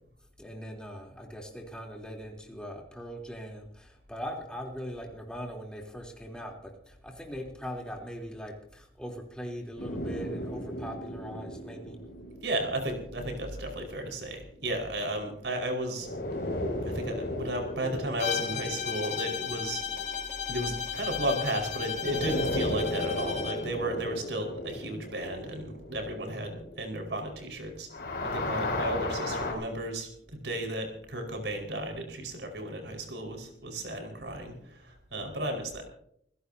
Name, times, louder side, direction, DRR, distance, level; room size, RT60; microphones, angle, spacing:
voice 1, 0.4-12.0, equal, 5° left, 0 dB, 3.3 m, -40 dB
sound 1, 9.8-14.3 16.0-21.4 21.9-27.5 27.8-29.5, left 1 dB, 55° left, 6.5 m, -36 dB
voice 2, 12.4-16.1 16.8-19.8 20.5-27.9 28.2-35.8, right 1 dB, 75° right, 3 dB, 4.9 m, -34 dB
Bowed string instrument, 18.2-23.7, left 7 dB, 40° left, 2.7 m, -34 dB
27.0 x 16.0 x 2.8 m, 0.68 s
head